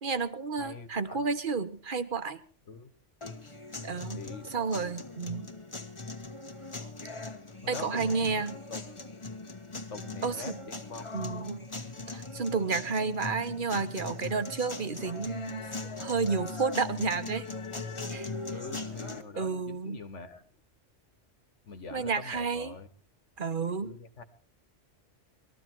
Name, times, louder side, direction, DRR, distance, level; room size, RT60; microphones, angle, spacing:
voice 1, 0.0-2.4 3.8-4.2 4.5-5.5 7.7-8.6 10.2-10.6 11.1-11.6 12.1-17.5 18.1-18.3 19.3-20.0 21.9-22.7 23.4-23.9, right 4 dB, 45° right, 11 dB, 1.3 m, -31 dB
voice 2, 0.6-1.3 2.7-2.9 4.1-4.5 7.6-8.4 8.7-8.8 9.7-11.1 18.5-20.4 21.7-22.9 23.8-24.2, left 4 dB, 75° left, 9 dB, 1.9 m, -43 dB
sound 1, 3.2-19.2, left 3 dB, 25° left, 1.6 m, -40 dB
20.5 x 14.0 x 4.6 m, 0.42 s
omnidirectional pair, 1.2 m